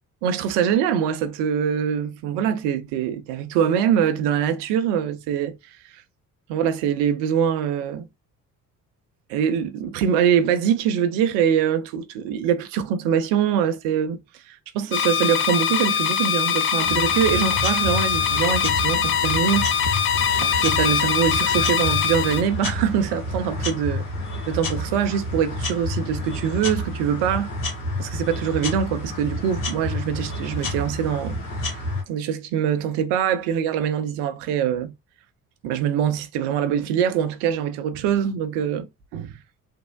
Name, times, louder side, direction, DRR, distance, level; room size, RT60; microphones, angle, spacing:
voice 1, 0.2-5.5 5.9-6.0 6.5-8.1 9.3-14.2 14.5-19.7 19.9-24.1 24.5-27.5 28.0-34.9 35.6-38.9 39.1-39.4, right 8 dB, 65° right, 0.6 m, -23 dB
sound 1, 14.9-22.4, left 8 dB, 30° left, 0.4 m, -22 dB
sound 2, 16.8-32.0, left 1 dB, 85° left, 0.9 m, -30 dB
3.5 x 2.0 x 2.2 m
hypercardioid pair, 55°, 44 cm